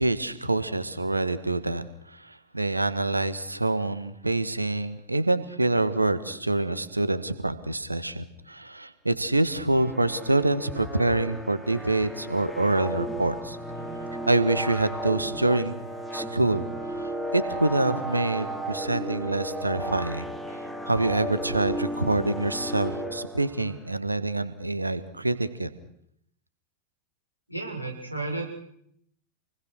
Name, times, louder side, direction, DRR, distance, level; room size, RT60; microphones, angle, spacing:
voice 1, 0.0-13.6 14.3-15.9 16.1-20.3 20.9-25.7, right 2 dB, 85° right, 12 dB, 1.7 m, -26 dB
sound 1, 9.7-23.8, right 1 dB, 5° left, 3.3 m, -34 dB
voice 2, 27.5-28.6, right 2 dB, 90° left, 4 dB, 7.0 m, -33 dB
28.0 x 20.5 x 6.5 m, 0.71 s
figure-of-eight pair, 90°, 0 cm